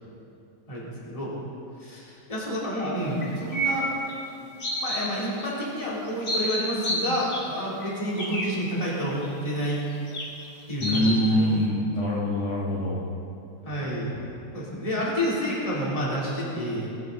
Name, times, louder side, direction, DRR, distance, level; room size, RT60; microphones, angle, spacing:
voice 1, 0.7-1.3 1.8-3.9 4.4-9.8 10.7-11.5 13.6-14.1 14.5-16.9, equal, 10° left, -7 dB, 3.3 m, -29 dB
sound 1, 3.2-4.1 4.6-5.0 5.4-5.5 6.1-7.5 7.8-8.5 9.2-9.3 10.1-10.2 10.8-11.2, equal, 25° left, 2.0 m, -29 dB
voice 2, 10.8-13.0, equal, 60° left, -4 dB, 2.6 m, -24 dB
20.5 x 12.0 x 4.2 m, 2.7 s
omnidirectional pair, 3.5 m